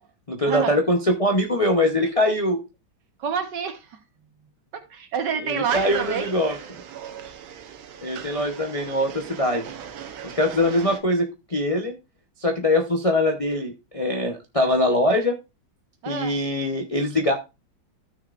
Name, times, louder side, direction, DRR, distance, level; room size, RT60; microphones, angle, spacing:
voice 1, 0.3-2.6 5.4-6.6 8.0-9.6 10.2-11.9 12.4-15.4 16.1-17.3, left 1 dB, 40° left, 0.5 m, -22 dB
voice 2, 3.2-4.0 4.7-6.3 16.0-16.3, right 7 dB, 60° right, 1.7 m, -28 dB
sound 1, 5.7-11.0, right 8 dB, 90° right, 1.8 m, -38 dB
14.5 x 6.5 x 2.5 m
omnidirectional pair, 2.2 m